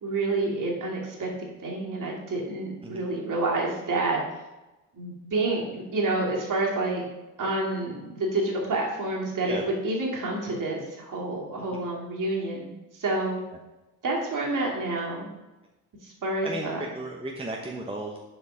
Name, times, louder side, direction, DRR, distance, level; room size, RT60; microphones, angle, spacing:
voice 1, 0.0-4.2 4.9-7.0 7.4-12.6 13.0-13.4 14.0-15.3 16.0-16.8, right 2 dB, 45° right, -2 dB, 2.4 m, -28 dB
voice 2, 16.4-18.2, right 2 dB, 10° right, 0 dB, 1.0 m, -35 dB
6.9 x 4.5 x 5.0 m, 1.0 s
hypercardioid pair, 45°, 45 cm